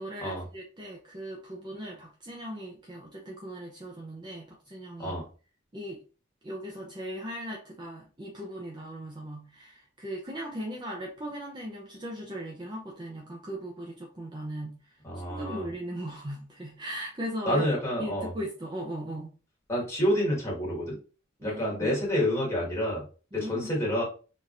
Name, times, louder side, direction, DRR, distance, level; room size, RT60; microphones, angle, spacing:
voice 1, 0.0-5.2 5.7-6.0 6.4-14.8 15.2-17.6 18.0-19.3 21.4-21.9 23.3-23.9, right 1 dB, 25° right, -1 dB, 0.7 m, -38 dB
voice 2, 15.0-15.7 17.5-18.3 19.7-21.0 21.4-23.0 23.3-24.0, equal, 15° left, -4 dB, 2.0 m, -28 dB
4.2 x 3.7 x 2.6 m, 0.36 s
head